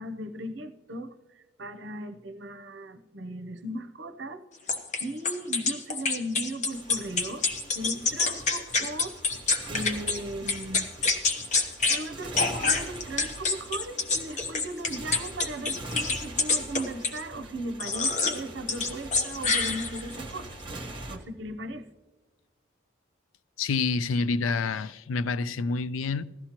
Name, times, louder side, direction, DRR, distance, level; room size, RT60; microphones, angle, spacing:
voice 1, 0.0-4.4 5.0-7.5 7.7-9.2 9.7-10.9 11.8-20.6 21.1-21.9, right 1 dB, 60° right, 0.7 m, -37 dB
sound 1, 4.7-10.2 10.5-12.0 12.3-17.2 17.8-18.4 18.7-20.2, left 4 dB, 35° left, 0.9 m, -27 dB
Motorcycle, 6.7-21.2, right 2 dB, 25° right, 1.1 m, -43 dB
voice 2, 23.6-26.2, left 4 dB, 85° left, 0.4 m, -28 dB
16.5 x 12.5 x 2.9 m
head